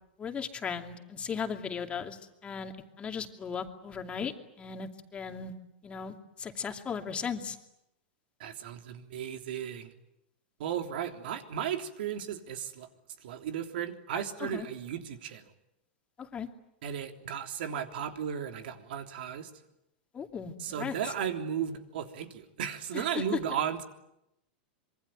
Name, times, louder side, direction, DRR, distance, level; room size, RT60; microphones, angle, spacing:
voice 1, 0.2-5.5 5.8-7.6 14.4-14.7 16.2-16.5 20.1-21.1 22.9-23.4, left 6 dB, 20° left, 4 dB, 2.6 m, -37 dB
voice 2, 8.4-9.9 10.6-12.9 13.2-15.5 16.8-19.5 20.6-23.8, right 8 dB, 75° right, 5 dB, 3.4 m, -35 dB
26.0 x 23.5 x 9.2 m, 0.87 s
supercardioid pair, 135°, 5 cm